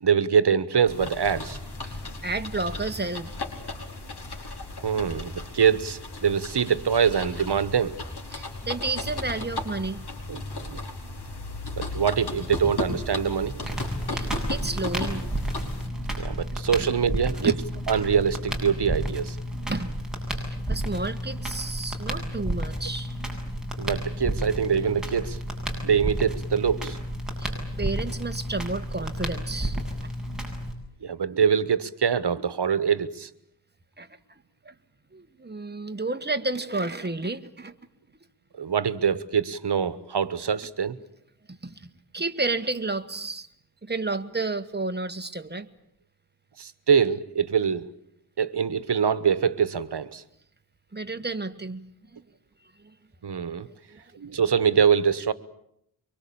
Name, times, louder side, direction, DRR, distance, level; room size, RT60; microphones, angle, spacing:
voice 1, 0.0-1.6 4.8-7.9 10.3-10.4 10.7-10.8 11.7-13.8 16.2-17.5 17.9-19.4 23.8-25.4 25.8-27.0 31.0-33.3 38.6-41.0 46.6-47.9 48.4-50.2 53.2-53.7 54.1-55.3, right 7 dB, 80° right, 15 dB, 1.3 m, -24 dB
sound 1, 0.9-15.9, left 2 dB, 70° left, 5.0 m, -35 dB
voice 2, 2.2-3.3 8.3-10.0 13.7-13.8 14.1-15.2 17.4-17.6 19.7-19.9 20.3-23.2 27.4-30.1 34.0-34.1 34.7-34.8 35.1-37.8 41.5-41.9 42.1-43.5 43.8-45.7 50.9-51.8 52.1-52.2 53.9-54.0, right 3 dB, 25° right, 8 dB, 1.7 m, -31 dB
Crackle, 13.6-30.7, equal, ahead, 7.8 m, -31 dB
24.5 x 24.0 x 8.7 m, 0.73 s
wide cardioid pair, 70°, 40 cm